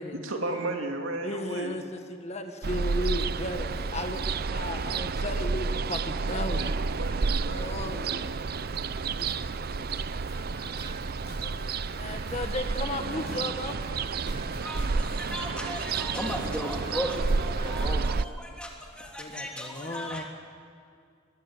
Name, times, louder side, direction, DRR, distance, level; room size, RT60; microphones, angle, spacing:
voice 1, 0.1-1.8 6.3-8.2, right 2 dB, 85° right, 3 dB, 2.8 m, -35 dB
voice 2, 1.2-6.6 7.4-8.0 11.4-13.8 19.2-20.2, left 1 dB, 35° left, 5 dB, 1.6 m, -35 dB
Ocean, 2.6-18.2, right 4 dB, 50° right, 0.5 m, -30 dB
sound 1, 8.3-17.9, left 1 dB, 55° left, 6.7 m, -47 dB
voice 3, 14.6-20.2, equal, 5° left, 0 dB, 3.2 m, -36 dB
24.0 x 21.0 x 8.0 m, 2.3 s
head